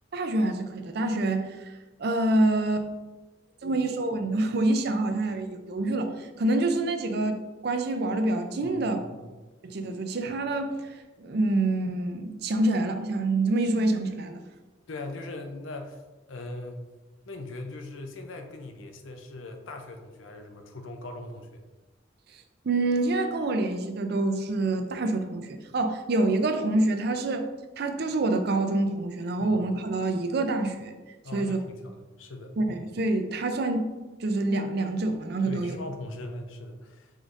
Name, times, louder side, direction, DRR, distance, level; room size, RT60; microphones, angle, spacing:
voice 1, 0.1-1.7 2.0-2.9 3.6-9.0 9.6-14.4 22.6-27.5 27.8-30.9 31.3-31.6 32.6-33.9 34.2-35.8, right 2 dB, 55° right, 6 dB, 0.5 m, -26 dB
voice 2, 14.9-16.0 16.3-16.8 17.3-21.6 29.4-29.5 31.2-32.5 35.4-37.1, left 2 dB, 90° left, 5 dB, 0.6 m, -40 dB
5.0 x 3.8 x 2.6 m, 1.2 s
head